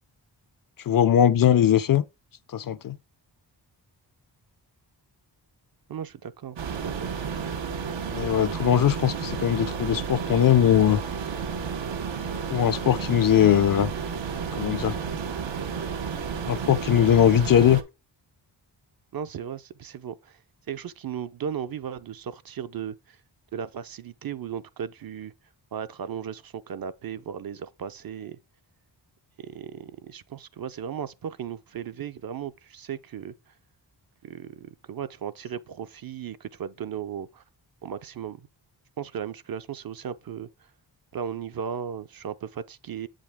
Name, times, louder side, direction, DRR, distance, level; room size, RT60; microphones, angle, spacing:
voice 1, 0.9-2.0 2.5-3.0 8.1-11.0 12.5-13.9 14.6-15.0 16.5-17.8, left 10 dB, 50° left, 0.4 m, -20 dB
voice 2, 5.9-7.3 17.0-17.7 19.1-20.4 20.7-23.2 23.5-25.3 25.7-28.4 29.4-33.5 34.2-37.4 37.8-38.5 39.0-40.5 41.1-43.1, right 8 dB, 55° right, 0.5 m, -36 dB
sound 1, 6.6-17.8, right 6 dB, 85° right, 0.9 m, -32 dB
7.7 x 5.1 x 3.4 m
wide cardioid pair, 115°, 44 cm